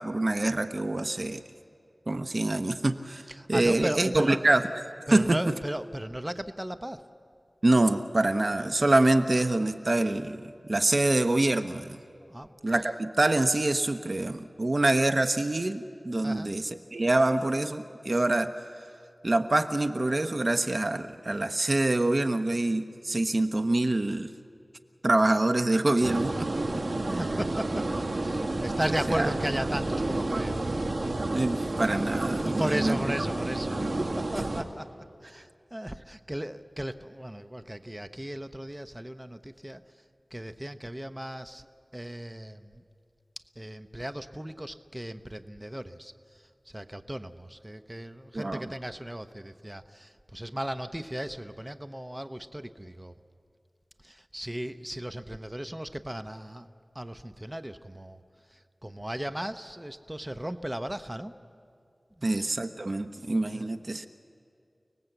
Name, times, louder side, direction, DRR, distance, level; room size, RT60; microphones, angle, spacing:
voice 1, 0.0-1.4 2.1-3.2 3.5-4.6 5.1-5.4 7.6-12.0 12.6-18.5 19.2-24.3 25.0-27.2 29.2-29.3 31.3-33.0 33.8-34.1 48.3-48.6 62.2-64.1, right 2 dB, 50° right, 9 dB, 1.0 m, -25 dB
voice 2, 3.3-4.6 5.1-7.0 12.3-12.5 16.2-16.5 27.0-27.9 28.2-30.6 31.2-31.3 32.4-33.9 34.1-34.9 35.2-39.8 40.3-42.8 43.6-53.1 54.0-56.7 56.9-58.2 58.5-61.3 62.2-62.4 63.5-63.7, right 1 dB, 15° right, 9 dB, 0.8 m, -36 dB
sound 1, 26.0-34.6, right 2 dB, 85° right, 2.1 m, -30 dB
29.5 x 19.5 x 8.0 m, 2.4 s
wide cardioid pair, 55°, 0 cm